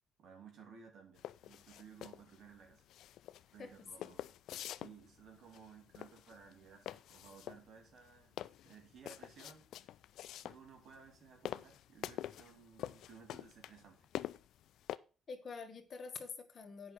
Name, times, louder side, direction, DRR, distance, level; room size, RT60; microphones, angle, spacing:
voice 1, 0.2-2.8 3.5-4.3 4.7-9.9 10.4-14.1, right 6 dB, 70° right, 4 dB, 2.8 m, -58 dB
sound 1, 1.2-15.0, left 12 dB, 80° left, 0.4 m, -46 dB
voice 2, 3.6-4.1 15.3-16.9, left 5 dB, 50° left, 6 dB, 1.6 m, -47 dB
8.4 x 5.7 x 6.5 m, 0.36 s
cardioid pair, 90°, 0 cm